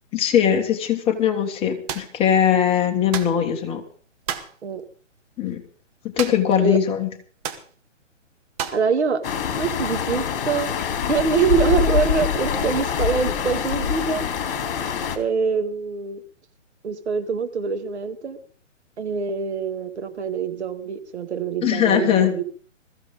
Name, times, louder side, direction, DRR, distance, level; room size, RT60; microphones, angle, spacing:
voice 1, 0.1-3.8 5.4-5.6 6.0-7.1 21.6-22.3, left 9 dB, 15° left, 4 dB, 1.7 m, -20 dB
sound 1, 1.9-2.1 3.1-3.4 4.3-4.6 6.2-6.6 6.8-6.9 7.4-7.7 8.6-8.9, right 8 dB, 30° right, 1.8 m, -30 dB
voice 2, 8.7-9.3 9.6-10.7 11.1-14.3 15.2-16.2 16.8-18.4 19.0-22.4, right 5 dB, 60° right, 8 dB, 2.3 m, -24 dB
sound 2, 9.2-15.2, left 7 dB, 45° left, 3.2 m, -25 dB
22.0 x 14.5 x 3.9 m, 0.43 s
figure-of-eight pair, 135°, 38 cm